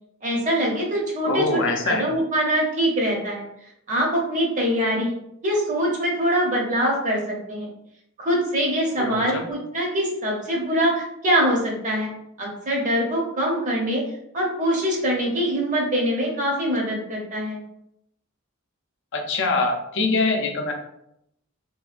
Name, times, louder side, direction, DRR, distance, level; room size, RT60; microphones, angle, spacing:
voice 1, 0.2-3.5 3.9-5.1 5.4-7.7 8.2-12.1 12.4-14.0 14.3-17.6, equal, 40° right, -1 dB, 0.7 m, -23 dB
voice 2, 1.3-2.0 9.0-9.4 19.1-20.7, left 3 dB, 60° left, 3 dB, 0.5 m, -24 dB
2.7 x 2.3 x 2.4 m, 0.78 s
head